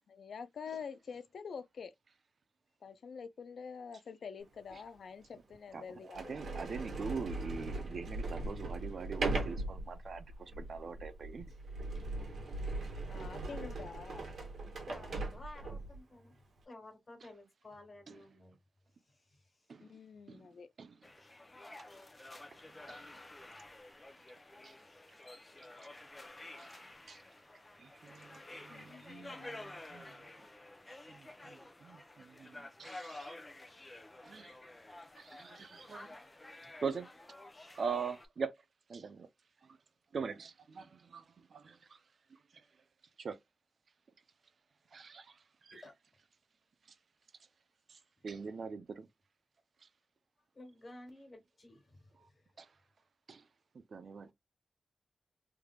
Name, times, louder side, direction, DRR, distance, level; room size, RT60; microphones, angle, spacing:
voice 1, 0.1-1.9 2.8-6.8 13.1-14.3 19.8-20.7 28.7-29.7, left 6 dB, 85° left, 0.4 m, -47 dB
Sliding door, 4.7-4.8 5.5-5.6 6.1-16.0, right 2 dB, 85° right, 1.5 m, -39 dB
voice 2, 5.7-11.5 13.1-13.3 18.1-18.2 19.7-19.9 20.3-20.5 20.8-20.9 22.9-23.1 24.6-24.7 26.6-26.7 27.1-27.2 27.8-30.2 31.1-33.4 34.2-34.5 35.2-36.1 36.8-37.1 37.7-38.5 38.9-39.3 40.1-41.2 41.5-42.0 43.2-43.4 44.9-45.3 45.6-45.7 47.9-49.1 52.6-52.7 53.3-53.4 53.7-54.3, right 5 dB, 60° right, 0.6 m, -43 dB
voice 3, 14.8-16.4 16.6-18.6 19.0-19.7 22.0-22.5 24.7-24.8 31.4-31.6 45.7-45.9 48.2-48.3 50.5-52.6, left 2 dB, 35° left, 1.6 m, -54 dB
sound 1, 21.0-38.3, left 2 dB, 20° left, 0.6 m, -51 dB
3.4 x 3.2 x 2.3 m
wide cardioid pair, 150°, 0 cm